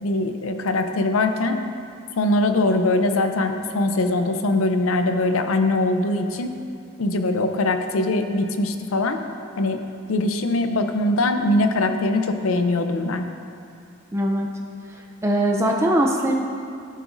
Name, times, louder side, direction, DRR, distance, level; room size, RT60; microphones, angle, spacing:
voice 1, 0.0-1.6 2.2-6.5 7.0-9.2 9.6-9.8 10.1-13.3, left 2 dB, 85° left, 7 dB, 0.6 m, -22 dB
voice 2, 14.1-14.5 14.9-16.3, right 1 dB, 15° right, -1 dB, 0.5 m, -21 dB
11.5 x 7.9 x 2.6 m, 2.4 s
head